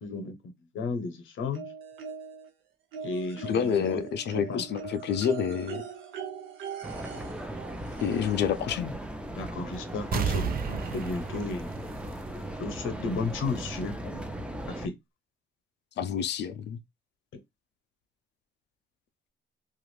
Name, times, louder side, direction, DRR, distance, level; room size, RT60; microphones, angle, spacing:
voice 1, 0.0-1.7 3.0-4.0 4.3-4.7 7.1-7.3 9.4-11.7 12.6-14.9 17.3-17.4, left 3 dB, 80° left, 0.9 m, -34 dB
sound 1, 1.5-2.5 2.9-8.6 9.8-9.9 10.3-10.4, right 7 dB, 80° right, 0.8 m, -41 dB
voice 2, 3.4-5.8 8.0-9.0 16.0-16.8, left 8 dB, 60° left, 0.5 m, -28 dB
sound 2, 6.8-14.9, right 1 dB, 5° right, 0.6 m, -38 dB
sound 3, 10.1-12.7 13.1-13.2, right 7 dB, 50° right, 0.4 m, -32 dB
2.5 x 2.4 x 3.1 m
cardioid pair, 90°, 20 cm